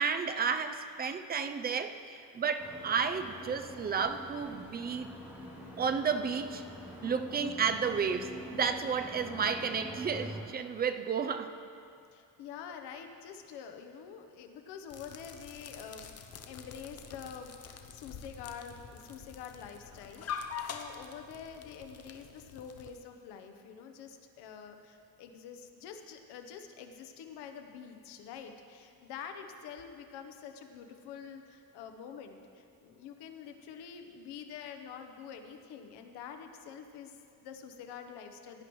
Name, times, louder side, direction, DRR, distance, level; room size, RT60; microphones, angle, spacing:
voice 1, 0.0-5.1 5.8-6.6 7.0-11.5, right 6 dB, 25° right, 8 dB, 0.5 m, -32 dB
sound 1, 2.6-10.4, left 1 dB, 5° right, 2.6 m, -45 dB
voice 2, 12.1-16.1 16.4-38.6, left 7 dB, 85° left, 5 dB, 1.0 m, -47 dB
sound 2, 14.9-22.9, left 7 dB, 40° left, 0.7 m, -45 dB
17.0 x 10.0 x 3.1 m, 2.4 s
cardioid pair, 135°, 39 cm